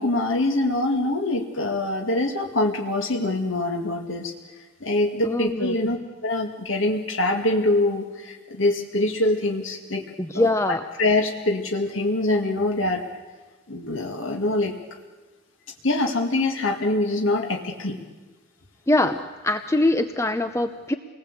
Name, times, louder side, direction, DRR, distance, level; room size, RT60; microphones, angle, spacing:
voice 1, 0.0-4.3 4.8-6.0 6.2-10.0 10.3-13.0 13.7-14.7 15.8-18.0, left 2 dB, 80° left, 2 dB, 2.2 m, -24 dB
voice 2, 5.2-5.7 10.2-10.8 18.9-20.9, left 2 dB, 15° left, 8 dB, 0.7 m, -23 dB
28.5 x 20.0 x 8.2 m, 1.3 s
head